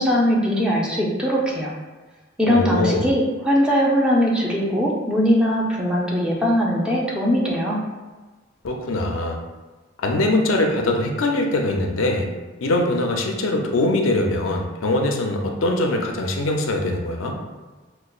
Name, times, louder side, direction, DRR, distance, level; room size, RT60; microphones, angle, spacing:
voice 1, 0.0-1.7 2.4-7.8, equal, 5° right, -4 dB, 0.5 m, -20 dB
voice 2, 2.4-3.1 8.6-9.4 10.0-12.3 12.6-17.4, left 2 dB, 90° left, 2 dB, 0.5 m, -22 dB
5.1 x 2.2 x 2.4 m, 1.3 s
head